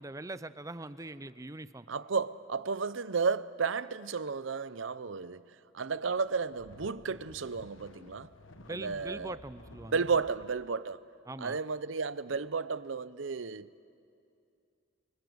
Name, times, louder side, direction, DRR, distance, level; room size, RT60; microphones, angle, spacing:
voice 1, 0.0-1.9 8.6-10.0 11.3-11.6, right 2 dB, 15° right, 0.6 m, -42 dB
voice 2, 1.9-8.3 8.7-9.4 9.9-11.0 11.4-13.8, right 5 dB, 75° right, 0.7 m, -33 dB
sound 1, 6.3-10.5, left 2 dB, 85° left, 1.2 m, -54 dB
29.5 x 24.0 x 8.0 m
head